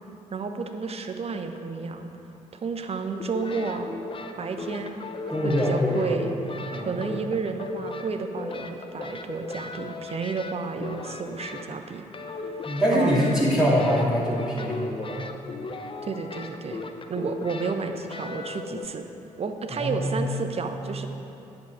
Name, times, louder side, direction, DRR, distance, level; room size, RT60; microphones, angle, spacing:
voice 1, 0.3-2.1 2.5-3.9 4.4-5.1 5.4-12.0 12.3-12.6 12.9-13.2 16.0-16.8 17.1-19.1 19.4-21.1, right 4 dB, 35° right, 6 dB, 0.8 m, -31 dB
sound 1, 3.2-11.9 12.1-18.9, left 3 dB, 30° left, 0.8 m, -37 dB
voice 2, 5.3-6.3 6.7-7.0 12.6-15.3 19.7-20.2, equal, 5° right, -8 dB, 2.3 m, -24 dB
9.6 x 8.2 x 4.7 m, 2.9 s
figure-of-eight pair, 40°, 18 cm